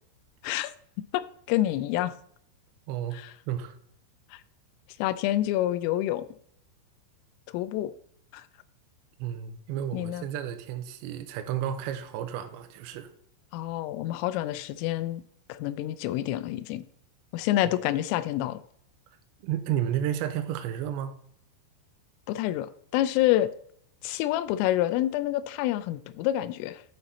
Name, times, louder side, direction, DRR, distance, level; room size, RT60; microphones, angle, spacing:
voice 1, 1.5-2.1 3.1-3.3 4.3-4.4 5.0-6.2 7.5-7.9 8.3-8.4 9.9-10.3 13.5-15.2 15.5-16.8 17.3-18.6 22.3-23.5 24.0-26.8, left 14 dB, 85° left, 3.1 m, -27 dB
voice 2, 2.9-3.2 3.5-3.8 9.2-13.1 19.4-21.2, right 10 dB, 85° right, 2.6 m, -32 dB
9.6 x 5.9 x 4.0 m
omnidirectional pair, 5.9 m